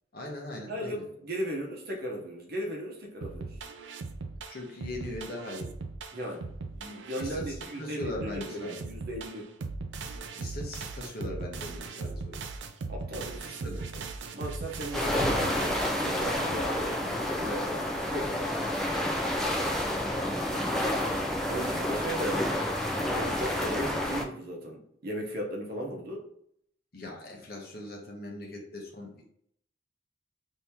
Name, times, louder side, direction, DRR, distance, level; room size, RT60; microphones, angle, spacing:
voice 1, 0.1-1.1 4.5-5.7 7.2-8.7 10.4-12.4 13.5-14.1 15.0-15.3 20.2-20.5 26.9-29.2, left 1 dB, 50° left, 0 dB, 0.9 m, -40 dB
voice 2, 0.7-3.5 6.1-6.5 6.8-9.5 12.9-14.0 14.3-17.8 18.1-18.6 21.5-22.5 23.0-26.3, equal, 55° right, 1 dB, 0.8 m, -37 dB
sound 1, 3.2-16.4, right 3 dB, 75° right, 0.4 m, -39 dB
sound 2, 14.9-24.2, left 1 dB, ahead, 0.4 m, -29 dB
2.9 x 2.7 x 3.4 m, 0.70 s
head